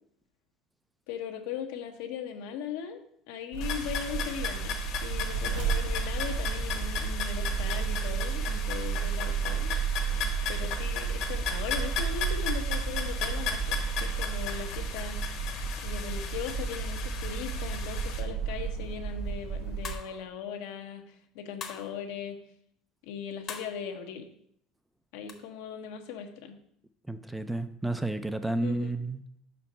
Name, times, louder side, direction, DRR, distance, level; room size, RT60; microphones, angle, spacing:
voice 1, 1.1-3.0 3.3-9.7 10.5-15.2 15.8-22.4 23.0-24.3 25.1-26.6 28.6-29.0, left 7 dB, 80° left, 5 dB, 0.9 m, -39 dB
sound 1, 3.5-19.9, right 6 dB, 90° right, 1.2 m, -32 dB
sound 2, 3.6-18.2, left 7 dB, 60° left, 1.2 m, -36 dB
sound 3, 19.8-20.3 21.6-22.0 23.5-23.8 25.3-25.4, left 6 dB, 40° left, 0.9 m, -40 dB
voice 2, 27.1-29.2, right 2 dB, 5° right, 11 dB, 0.3 m, -31 dB
5.3 x 4.4 x 5.2 m, 0.69 s
cardioid pair, 125°, 0 cm